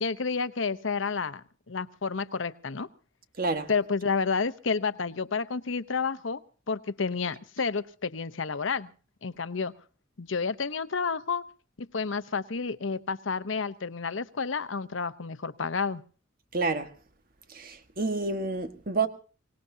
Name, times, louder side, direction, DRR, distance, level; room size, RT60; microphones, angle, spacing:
voice 1, 0.0-2.9 3.7-6.4 6.7-8.9 9.2-9.7 10.2-11.4 11.9-16.0, left 5 dB, 80° left, 0.9 m, -30 dB
voice 2, 3.4-3.7 16.5-16.9 17.5-19.1, right 3 dB, 50° right, 1.6 m, -29 dB
24.5 x 18.5 x 2.8 m
head